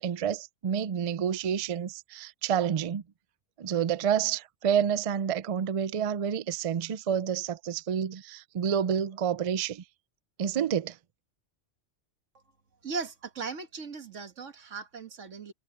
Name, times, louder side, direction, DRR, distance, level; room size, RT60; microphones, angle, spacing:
voice 1, 0.0-3.0 3.6-9.8 10.4-11.0, right 8 dB, 60° right, 0.3 m, -29 dB
voice 2, 12.8-15.5, right 4 dB, 90° right, 1.8 m, -38 dB
omnidirectional pair, 1.2 m